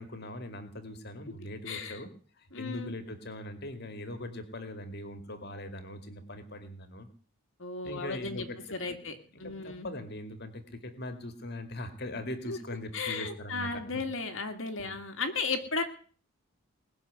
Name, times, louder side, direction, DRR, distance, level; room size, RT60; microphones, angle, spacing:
voice 1, 0.0-2.1 2.4-7.1 7.8-8.6 8.9-9.0 9.4-14.0 14.8-15.0, left 1 dB, 45° left, 8 dB, 2.3 m, -41 dB
voice 2, 1.7-2.0 2.5-3.0 7.6-9.9 12.5-12.6 12.9-15.8, left 4 dB, 60° left, 4 dB, 2.2 m, -35 dB
20.5 x 7.1 x 9.6 m, 0.43 s
head